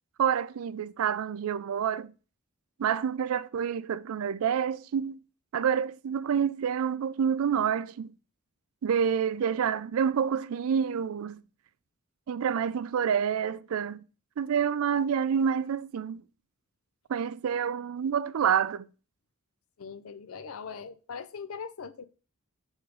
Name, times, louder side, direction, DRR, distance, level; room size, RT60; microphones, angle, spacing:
voice 1, 0.2-2.1 2.8-5.2 5.5-8.1 8.8-11.4 12.3-14.0 14.4-16.2 17.1-18.9, right 7 dB, 75° right, 0.4 m, -28 dB
voice 2, 19.8-22.0, left 6 dB, 75° left, 0.5 m, -41 dB
6.3 x 3.6 x 4.7 m
head